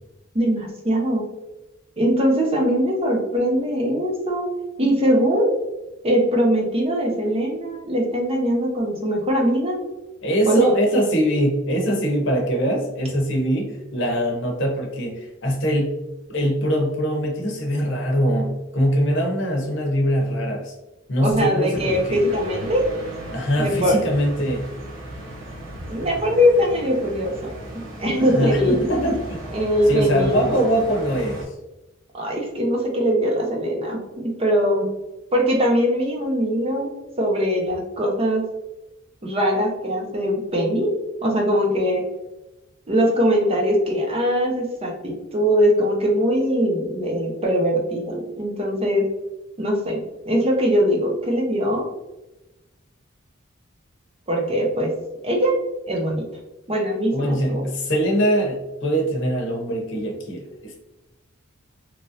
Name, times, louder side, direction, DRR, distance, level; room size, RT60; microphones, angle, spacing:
voice 1, 0.3-1.2 2.0-4.5 4.8-5.5 6.0-9.8 10.5-10.7 21.2-22.8 23.6-23.9 25.9-28.8 29.5-30.6 32.1-34.9 35.3-36.9 37.2-38.4 39.2-40.9 41.2-42.0 42.9-49.0 49.6-50.0 50.3-51.8 54.3-54.9 55.2-55.5 55.9-56.3 56.7-57.6, equal, 30° right, 0 dB, 0.6 m, -21 dB
voice 2, 10.2-15.9 16.3-20.7 21.1-22.2 23.3-24.7 28.3-29.4 29.9-31.5 57.1-60.8, equal, 65° left, 1 dB, 0.8 m, -22 dB
sound 1, 21.7-31.5, right 1 dB, 70° right, 1.1 m, -36 dB
3.1 x 2.5 x 2.6 m, 1.0 s
head